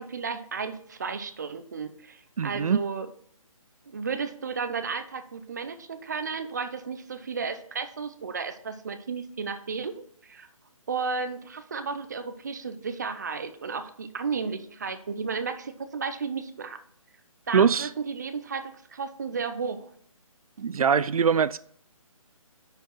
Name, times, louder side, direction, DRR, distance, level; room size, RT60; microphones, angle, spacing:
voice 1, 0.0-3.1 3.9-10.5 10.9-16.8 17.5-19.9, right 5 dB, 30° right, 0.6 m, -33 dB
voice 2, 2.4-2.8 17.5-17.9 20.6-21.6, right 6 dB, 85° right, 0.4 m, -22 dB
10.5 x 4.7 x 4.5 m
hypercardioid pair, 170°, 18 cm